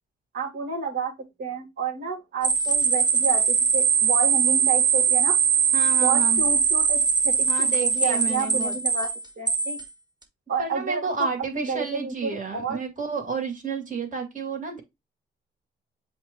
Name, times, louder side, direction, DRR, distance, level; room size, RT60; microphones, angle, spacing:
voice 1, 0.3-1.1 1.4-5.4 6.0-7.0 7.2-9.8 10.5-12.8, right 4 dB, 60° right, 2.4 m, -30 dB
sound 1, 2.4-9.8, right 6 dB, 20° right, 2.1 m, -21 dB
voice 2, 5.7-6.4 7.5-8.8 10.6-14.8, right 4 dB, 40° right, 2.5 m, -31 dB
7.5 x 2.9 x 4.5 m
cardioid pair, 90°, 20 cm